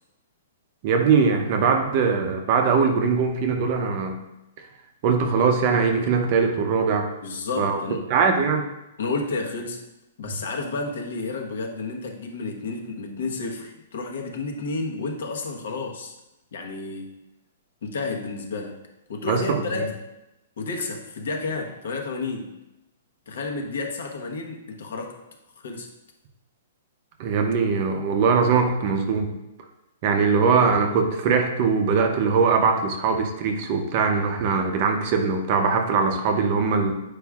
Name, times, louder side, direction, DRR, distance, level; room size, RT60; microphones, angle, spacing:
voice 1, 0.8-4.2 5.0-7.1 7.6-7.8 8.1-8.7 10.3-10.4 19.3-19.6 27.2-29.3 30.0-37.0, right 5 dB, 30° right, 5 dB, 0.6 m, -21 dB
voice 2, 7.2-8.0 9.0-9.8 10.2-16.1 16.5-17.2 17.8-18.8 19.1-20.0 20.6-22.5 23.3-25.2 25.6-25.9, left 3 dB, 65° left, 2 dB, 1.1 m, -31 dB
8.6 x 4.9 x 2.4 m, 0.93 s
hypercardioid pair, 175°, 0 cm